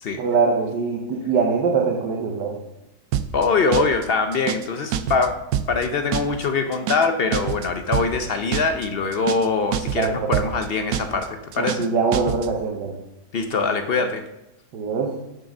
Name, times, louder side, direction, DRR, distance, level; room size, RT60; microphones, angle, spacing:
voice 1, 0.2-2.6 9.9-10.4 11.6-12.9 14.7-15.1, right 5 dB, 90° right, 1 dB, 1.5 m, -23 dB
sound 1, 3.1-3.5 3.7-4.1 4.3-4.7 4.9-5.3 5.5-5.9 6.1-6.5 6.7-7.1 7.3-7.7 7.9-8.3 8.5-8.9 9.1-9.5 9.7-10.1 10.3-10.7 10.9-11.3 11.5-11.9 12.1-12.5, right 9 dB, 70° right, 1.0 m, -26 dB
voice 2, 3.3-5.4 5.7-11.8 13.3-14.2, left 4 dB, 60° left, 7 dB, 0.6 m, -23 dB
6.8 x 6.4 x 6.0 m, 0.92 s
omnidirectional pair, 1.8 m